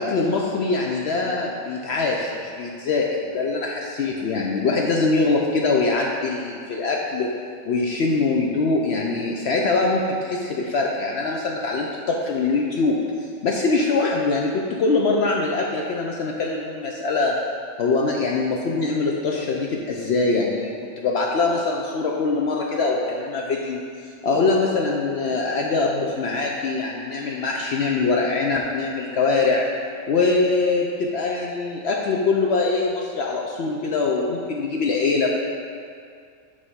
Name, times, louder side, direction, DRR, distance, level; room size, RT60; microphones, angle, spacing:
voice 1, 0.0-7.3 7.7-17.4 17.8-23.8 24.2-29.6 30.1-35.3, left 3 dB, 65° left, -1 dB, 0.8 m, -23 dB
8.1 x 3.3 x 5.5 m, 2.2 s
omnidirectional pair, 1.3 m